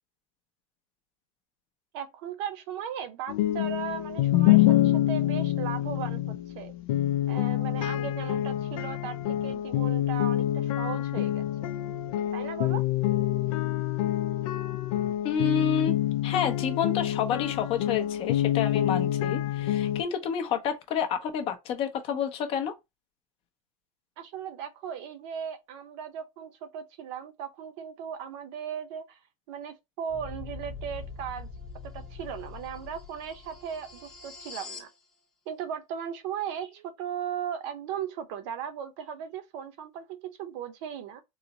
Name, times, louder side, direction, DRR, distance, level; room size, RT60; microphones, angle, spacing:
voice 1, 1.9-6.7 7.3-11.8 12.3-12.8 24.2-29.2 29.5-31.5 31.8-34.9 35.5-41.2, right 8 dB, 55° right, 0.7 m, -37 dB
sound 1, 3.3-20.0, left 13 dB, 75° left, 0.5 m, -26 dB
voice 2, 15.2-15.9 16.2-22.7, left 7 dB, 30° left, 0.6 m, -29 dB
sound 2, 30.1-34.9, left 4 dB, 5° left, 0.8 m, -43 dB
3.9 x 2.0 x 4.0 m
supercardioid pair, 160°, 18 cm